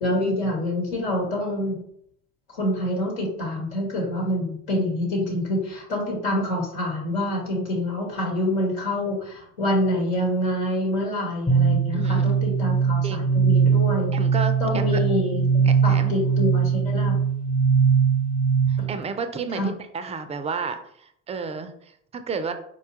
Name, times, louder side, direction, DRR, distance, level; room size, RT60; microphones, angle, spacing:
voice 1, 0.0-1.8 2.5-14.1 14.6-17.2 19.5-19.7, left 1 dB, 80° left, -2 dB, 1.3 m, -26 dB
sound 1, 11.5-19.0, right 6 dB, 15° left, 0.7 m, -21 dB
voice 2, 11.9-12.4 13.0-13.3 14.1-15.0 15.7-16.1 18.7-22.5, right 5 dB, 20° right, 9 dB, 0.3 m, -32 dB
4.2 x 2.3 x 2.8 m, 0.68 s
hypercardioid pair, 65°, 38 cm